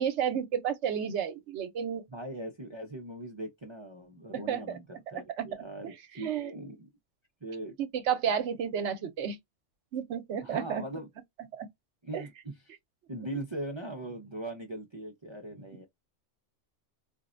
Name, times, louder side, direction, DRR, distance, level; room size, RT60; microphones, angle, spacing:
voice 1, 0.0-2.0 4.5-4.8 5.4-5.5 6.2-6.5 7.8-9.4 9.9-10.8 11.6-11.7 12.1-12.2, right 8 dB, 70° right, 0.9 m, -31 dB
voice 2, 2.1-6.9 7.4-7.7 10.4-11.1 12.0-12.7 13.1-15.9, right 1 dB, 30° right, 0.5 m, -40 dB
4.2 x 2.0 x 2.5 m
omnidirectional pair, 1.3 m